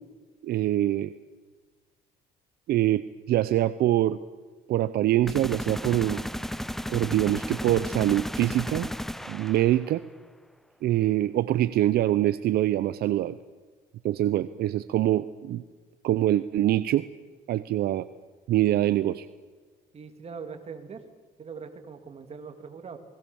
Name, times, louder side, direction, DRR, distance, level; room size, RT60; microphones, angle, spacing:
voice 1, 0.4-1.1 2.7-4.2 4.7-6.2 6.9-8.9 9.3-10.0 10.8-13.4 14.0-15.6 16.0-17.1 17.5-18.1 18.5-19.3, right 13 dB, 70° right, 14 dB, 0.8 m, -24 dB
sound 1, 5.3-10.0, equal, ahead, 0.7 m, -34 dB
voice 2, 19.9-21.0 21.4-23.0, right 5 dB, 40° right, 6 dB, 2.9 m, -41 dB
28.5 x 20.5 x 7.1 m, 1.4 s
cardioid pair, 110°, 17 cm